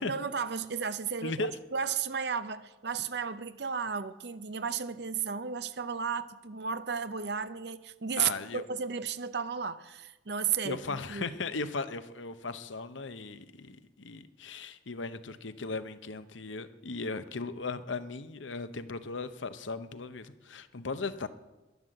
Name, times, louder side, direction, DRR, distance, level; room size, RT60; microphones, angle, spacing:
voice 1, 0.0-11.3, right 6 dB, 60° right, 0.6 m, -34 dB
voice 2, 1.2-1.5 8.2-8.6 10.6-21.3, left 3 dB, 80° left, 0.9 m, -37 dB
12.0 x 11.0 x 7.7 m
head